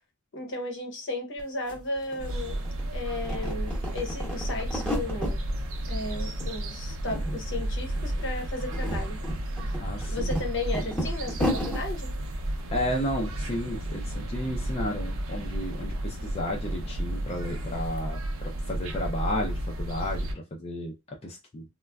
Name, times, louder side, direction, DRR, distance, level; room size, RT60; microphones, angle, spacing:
voice 1, 0.3-2.6 2.9-5.4 5.9-9.2 10.1-12.1, left 2 dB, 55° left, 0.7 m, -34 dB
sound 1, 1.4-1.5 1.7-2.8 3.2-5.4 5.8-6.5 6.8-7.6 7.9-8.1 8.5-11.8, equal, 5° left, 0.8 m, -32 dB
sound 2, 2.2-20.3, right 1 dB, 65° right, 0.6 m, -32 dB
voice 2, 9.8-10.4 12.7-18.2 18.7-21.6, left 1 dB, 25° left, 0.4 m, -33 dB
3.3 x 2.1 x 2.2 m
head